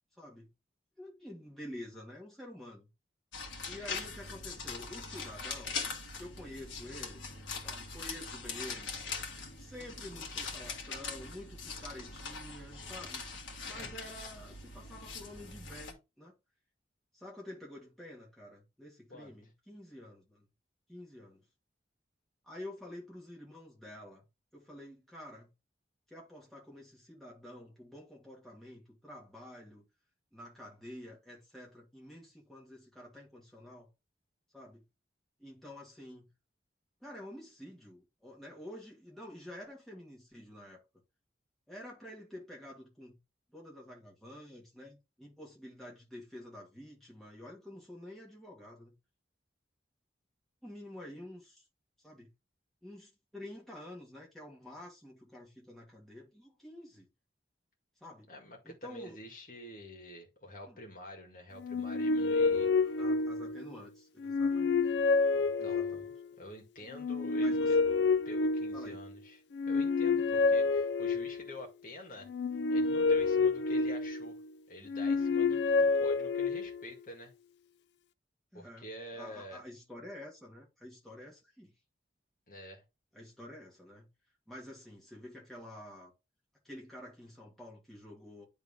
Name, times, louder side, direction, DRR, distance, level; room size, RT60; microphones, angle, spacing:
voice 1, 0.2-0.5 1.0-2.9 3.6-5.8 6.2-7.2 7.6-8.9 9.6-13.3 13.6-16.4 17.1-20.5 20.9-21.5 22.4-24.2 24.5-25.5 26.1-29.8 30.3-33.9 34.5-34.8 35.4-36.3 37.0-40.8 41.7-43.2 43.5-48.9 50.6-51.6 52.0-52.3 52.8-57.1 58.0-58.3 58.6-59.2 60.7-60.8 62.5-64.8 65.6-66.1 67.4-68.0 68.7-69.0 78.5-78.9 79.1-81.7 83.1-84.1 84.5-86.1 86.6-88.4, left 1 dB, ahead, 2.4 m, -49 dB
sound 1, 3.3-15.9, left 4 dB, 90° left, 1.7 m, -42 dB
voice 2, 58.3-63.0 65.3-67.8 68.3-72.3 72.7-74.4 74.7-77.3 78.5-79.6 82.5-82.8, equal, 45° left, 2.0 m, -48 dB
sound 2, 61.6-63.7 64.2-66.2 66.9-69.1 69.5-71.6 72.3-74.4 74.9-76.9, left 4 dB, 65° left, 0.4 m, -29 dB
9.4 x 3.6 x 3.6 m
head